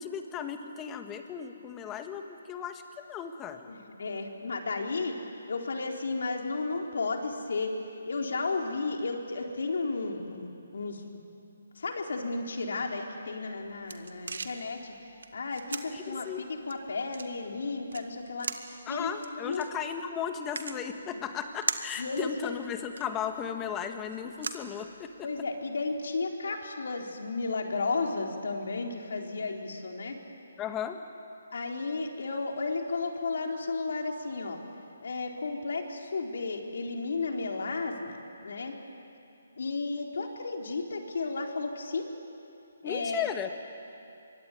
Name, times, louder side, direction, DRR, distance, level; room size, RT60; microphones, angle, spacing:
voice 1, 0.0-2.8 3.1-3.7 15.9-16.4 18.9-25.3 30.6-31.0 42.8-43.5, left 8 dB, 15° left, 6 dB, 1.7 m, -36 dB
voice 2, 3.7-5.2 5.5-7.7 8.1-11.0 11.8-14.9 15.3-19.1 19.4-19.6 21.1-21.2 22.0-22.5 25.2-30.2 31.5-34.6 35.0-38.7 39.6-42.1 42.8-43.3, left 3 dB, 70° left, 2 dB, 4.0 m, -33 dB
sound 1, 13.3-25.4, right 4 dB, 75° right, 2.0 m, -42 dB
24.5 x 23.5 x 9.5 m, 2.7 s
hypercardioid pair, 155°, 0 cm